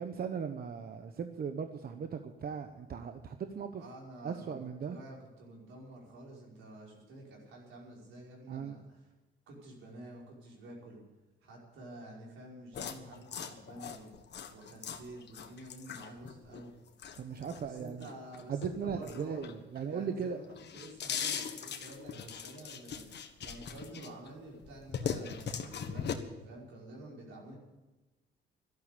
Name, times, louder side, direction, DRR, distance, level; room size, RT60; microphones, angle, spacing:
voice 1, 0.0-3.8 4.2-5.0 8.5-8.8 17.2-18.1 18.5-20.4, right 6 dB, 50° right, 7 dB, 1.0 m, -38 dB
voice 2, 3.8-4.5 4.8-9.0 9.5-11.0 11.4-14.1 14.5-16.8 17.7-19.4 19.8-27.6, right 1 dB, 85° right, -3 dB, 5.4 m, -49 dB
sound 1, 12.7-19.9 20.2-24.3 24.6-26.1, left 7 dB, 60° left, 1.4 m, -40 dB
12.5 x 12.0 x 8.4 m, 1.1 s
cardioid pair, 90°, 20 cm